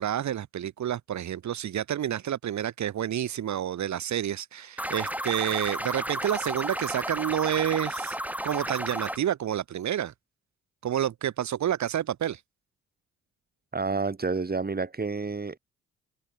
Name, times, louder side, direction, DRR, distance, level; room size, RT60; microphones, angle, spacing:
voice 1, 0.0-8.2 8.4-10.1 10.8-12.4, right 10 dB, 65° right, 2.3 m, -29 dB
sound 1, 4.8-9.2, right 1 dB, 5° right, 5.5 m, -32 dB
voice 2, 13.7-15.6, right 4 dB, 30° right, 3.9 m, -29 dB
hypercardioid pair, 45°, 31 cm